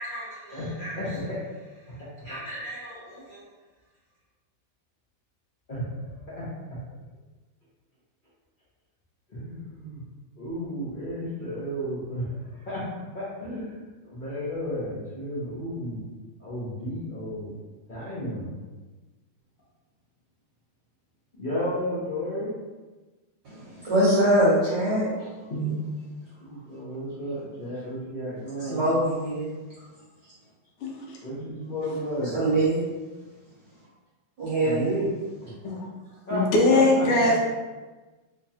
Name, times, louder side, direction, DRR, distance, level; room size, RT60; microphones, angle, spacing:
voice 1, 0.0-3.5 5.7-6.5 9.3-10.0 10.4-12.9 13.1-16.0 16.4-17.5 17.9-18.6 21.4-22.5 25.5-25.7 26.4-28.8 31.2-32.4 34.6-35.1 35.4-35.7 36.3-36.4 36.7-37.0, equal, 55° left, -12 dB, 0.5 m, -33 dB
voice 2, 23.4-25.3 28.6-29.5 32.3-32.8 34.4-35.0, right 1 dB, 60° right, -9 dB, 1.3 m, -23 dB
voice 3, 30.8-31.2 35.6-35.8 36.3-37.4, left 2 dB, 85° left, -2 dB, 1.5 m, -21 dB
3.4 x 3.0 x 2.8 m, 1.2 s
omnidirectional pair, 2.4 m